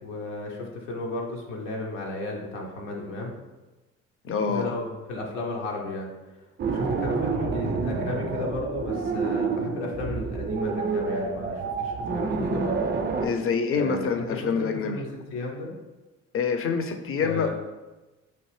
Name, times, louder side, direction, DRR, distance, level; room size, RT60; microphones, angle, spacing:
voice 1, 0.0-3.3 4.5-6.1 6.6-12.8 13.7-15.7 17.2-17.5, left 2 dB, 80° left, -1 dB, 0.8 m, -34 dB
voice 2, 4.2-4.7 13.2-15.0 16.3-17.5, left 5 dB, 35° left, 6 dB, 0.5 m, -26 dB
sound 1, 6.6-13.3, right 4 dB, 30° right, 0.4 m, -28 dB
4.4 x 2.5 x 3.2 m, 1.1 s
hypercardioid pair, 50°, 38 cm